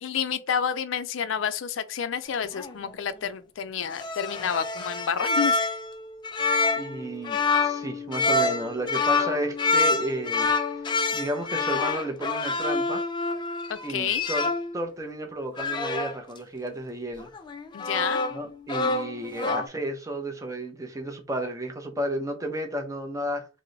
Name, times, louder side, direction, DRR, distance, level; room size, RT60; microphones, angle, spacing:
voice 1, 0.0-5.6 13.7-14.2 17.7-18.2, left 7 dB, 90° left, 0.4 m, -29 dB
sound 1, 2.3-2.7 3.9-14.8 15.6-16.2 17.2-18.4 18.7-19.7, left 3 dB, 25° left, 0.3 m, -27 dB
voice 2, 6.7-10.5 11.1-13.0 13.8-14.5 14.7-17.3 18.3-23.5, right 1 dB, 15° right, 0.6 m, -32 dB
3.0 x 2.1 x 3.8 m
head